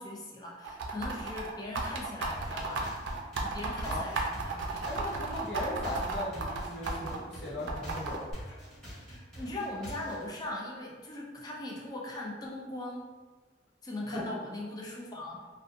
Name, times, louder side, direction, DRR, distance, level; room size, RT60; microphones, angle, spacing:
voice 1, 0.0-3.1 3.4-5.0 8.9-13.1 13.8-15.5, left 1 dB, 20° left, -3 dB, 0.4 m, -40 dB
sound 1, 0.6-7.2 7.7-8.3, right 3 dB, 80° right, 0.4 m, -34 dB
sound 2, 2.3-10.3, equal, ahead, 1.0 m, -45 dB
voice 2, 4.8-8.3 14.1-14.2, left 1 dB, 60° left, -8 dB, 1.0 m, -38 dB
2.7 x 2.2 x 2.5 m, 1.4 s
head